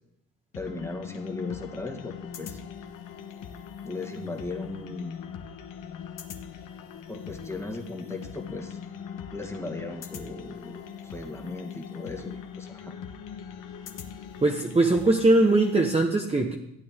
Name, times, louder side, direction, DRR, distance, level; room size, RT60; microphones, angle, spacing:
sound 1, 0.5-15.9, left 7 dB, 65° left, 1.2 m, -41 dB
voice 1, 0.5-2.6 3.8-5.3 7.1-8.8 9.3-13.0, left 3 dB, 5° left, 2 dB, 1.7 m, -37 dB
voice 2, 14.4-16.5, right 2 dB, 15° right, 1 dB, 1.1 m, -21 dB
14.0 x 8.8 x 3.7 m, 0.83 s
supercardioid pair, 85°, 35 cm